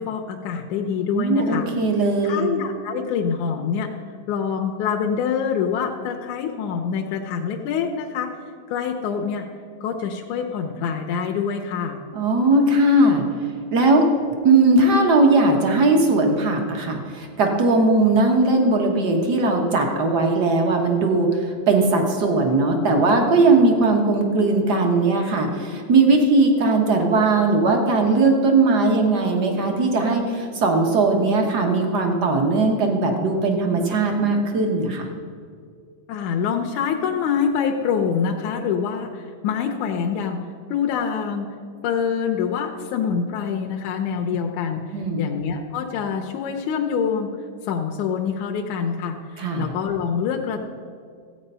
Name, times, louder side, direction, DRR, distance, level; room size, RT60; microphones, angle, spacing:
voice 1, 0.0-1.7 2.2-3.9 4.3-8.4 8.7-9.5 9.8-12.0 36.1-41.6 41.8-44.8 45.2-47.3 47.7-50.6, left 7 dB, 80° left, 2 dB, 2.2 m, -25 dB
voice 2, 1.1-2.5 12.1-13.2 13.7-14.1 14.4-35.1 44.9-45.3 49.4-49.7, right 2 dB, 50° right, 2 dB, 1.3 m, -19 dB
14.5 x 8.8 x 5.5 m, 2.2 s
omnidirectional pair, 3.4 m